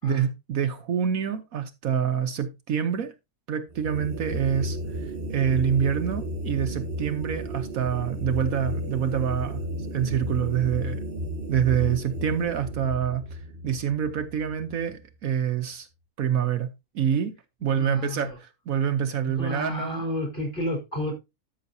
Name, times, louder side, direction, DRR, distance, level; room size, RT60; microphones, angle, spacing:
voice 1, 0.0-3.1 3.5-9.6 9.9-11.0 11.5-15.9 16.2-16.7 16.9-17.3 17.6-20.0, right 8 dB, 65° right, 1.2 m, -26 dB
sound 1, 3.7-15.0, right 1 dB, 40° right, 1.3 m, -33 dB
voice 2, 17.7-18.4 19.3-21.1, left 1 dB, 30° left, 4.1 m, -31 dB
12.5 x 6.2 x 2.8 m
omnidirectional pair, 1.6 m